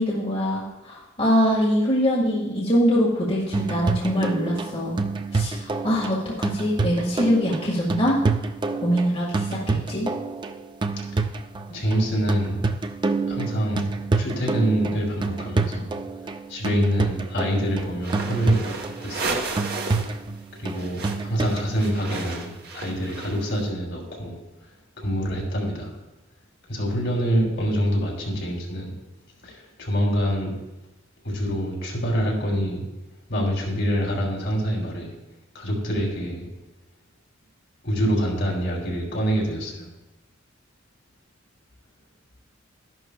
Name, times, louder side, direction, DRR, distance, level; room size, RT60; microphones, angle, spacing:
voice 1, 0.0-5.0 5.3-8.2 8.8-10.1, equal, 30° left, -5 dB, 1.6 m, -23 dB
sound 1, 3.5-21.7, right 3 dB, 25° right, 0.4 m, -28 dB
voice 2, 11.7-12.6 13.3-13.8 14.1-15.9 16.5-18.7 19.0-19.4 20.6-24.4 25.0-25.9 26.7-28.9 29.4-30.5 31.2-32.8 33.3-35.1 35.5-36.4 37.8-39.9, equal, 60° left, -2 dB, 2.9 m, -25 dB
sound 2, 18.0-20.2 20.4-23.6, right 3 dB, 50° right, 1.0 m, -33 dB
13.0 x 11.0 x 2.3 m, 1.0 s
head